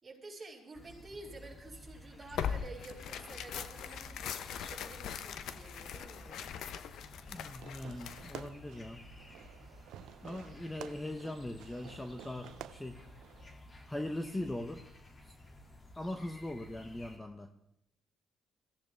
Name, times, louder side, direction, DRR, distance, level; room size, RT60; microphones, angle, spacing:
voice 1, 0.0-6.4, right 2 dB, 25° right, -3 dB, 6.5 m, -50 dB
sound 1, 0.7-17.2, left 1 dB, 30° left, 2.6 m, -54 dB
Tearing, 2.3-8.5, left 8 dB, 80° left, 0.9 m, -41 dB
voice 2, 7.3-9.0 10.2-13.0 13.8-14.9 15.2-15.3 16.0-17.5, left 1 dB, 10° left, 7 dB, 1.1 m, -40 dB
Fireworks, 7.4-13.4, right 12 dB, 85° right, 0.6 m, -52 dB
22.0 x 16.0 x 3.5 m, 0.79 s
cardioid pair, 85°, 0 cm